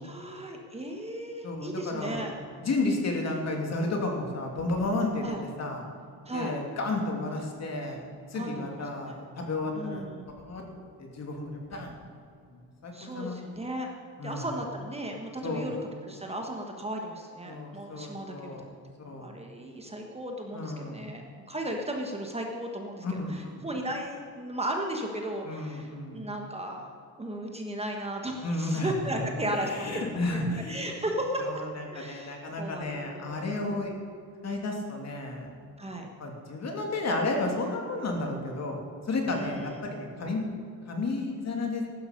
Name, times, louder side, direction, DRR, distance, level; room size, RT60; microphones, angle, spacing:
voice 1, 0.0-2.3 5.2-5.4 6.3-6.5 8.3-9.1 9.7-10.3 12.9-13.9 14.2-15.8 16.0-18.8 19.1-30.4 30.7-31.5 31.9-33.9 35.8-36.1 39.3-39.7, right 1 dB, 15° right, 1 dB, 1.4 m, -36 dB
voice 2, 1.4-2.3 2.6-5.8 6.3-10.6 11.0-12.0 12.5-13.4 14.2-14.4 15.4-15.6 17.4-18.7 19.0-19.3 20.5-21.1 23.0-23.6 25.4-26.2 28.4-28.9 29.5-30.8 31.4-33.9 34.4-35.5 36.2-38.8 39.1-40.4 40.9-41.8, left 2 dB, 45° left, 1 dB, 2.9 m, -32 dB
15.0 x 12.5 x 5.3 m, 2.4 s
cardioid pair, 135°, 38 cm